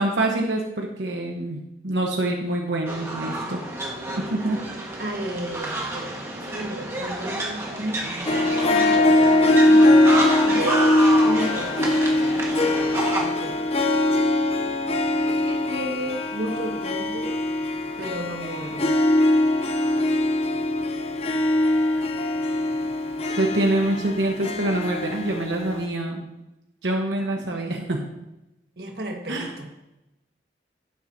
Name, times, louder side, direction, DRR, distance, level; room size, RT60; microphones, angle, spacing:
voice 1, 0.0-3.6 4.2-4.6 23.4-26.2 26.8-28.0 29.3-29.5, right 1 dB, 90° right, 0 dB, 1.1 m, -25 dB
sound 1, 2.9-13.3, right 1 dB, 15° right, 1.4 m, -30 dB
voice 2, 5.0-6.1 6.5-9.9 10.5-11.9 13.2-13.6 15.5-17.4 18.0-18.9 28.8-29.7, right 1 dB, 65° right, 1 dB, 1.5 m, -33 dB
Harp, 8.3-25.9, left 1 dB, 35° left, 0.5 m, -21 dB
11.5 x 9.0 x 2.7 m, 0.92 s
head